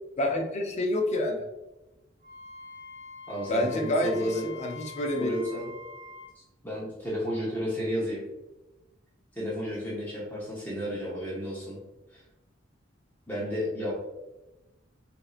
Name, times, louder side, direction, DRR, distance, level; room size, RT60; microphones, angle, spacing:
voice 1, 0.2-1.4 3.5-5.4, left 1 dB, 35° left, 2 dB, 0.5 m, -28 dB
Wind instrument woodwind instrument, 2.2-6.3, left 4 dB, 40° right, 0.8 m, -45 dB
voice 2, 3.3-4.4 5.2-5.7 6.6-8.2 9.3-11.8 12.1-12.2 13.3-13.9, equal, 10° left, -8 dB, 0.8 m, -32 dB
4.2 x 2.6 x 2.4 m, 1.0 s
head